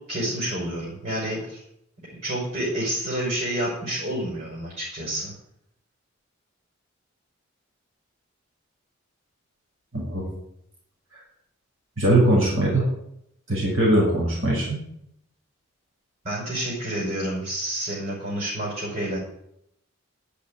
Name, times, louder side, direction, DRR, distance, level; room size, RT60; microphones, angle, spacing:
voice 1, 0.1-1.6 2.1-5.3 16.2-19.2, right 1 dB, 45° right, -5 dB, 5.9 m, -29 dB
voice 2, 12.0-12.9 13.5-14.8, right 1 dB, 80° right, -4 dB, 6.4 m, -21 dB
11.5 x 8.5 x 8.8 m, 0.76 s
head